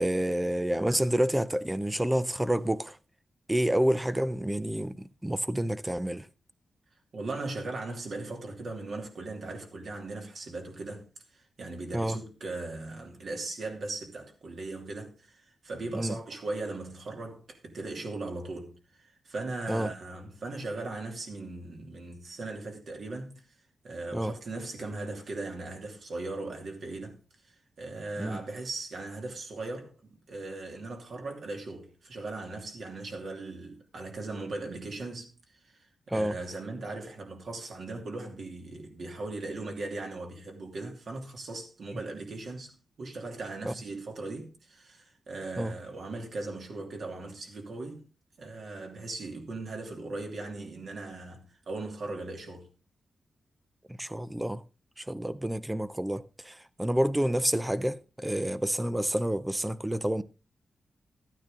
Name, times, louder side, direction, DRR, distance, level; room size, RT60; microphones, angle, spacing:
voice 1, 0.0-3.0 3.5-6.3 11.9-12.2 15.9-16.2 19.7-19.9 24.1-24.3 28.2-28.4 36.1-36.4 43.7-43.8 45.6-45.7 53.9-54.6 55.0-60.2, right 1 dB, 10° right, 0.5 m, -29 dB
voice 2, 7.1-11.1 11.3-23.4 23.8-29.9 30.3-35.3 35.6-42.7 43.0-48.0 48.4-52.7, right 2 dB, 55° right, 2.8 m, -38 dB
13.5 x 9.2 x 3.7 m
wide cardioid pair, 145°, 0 cm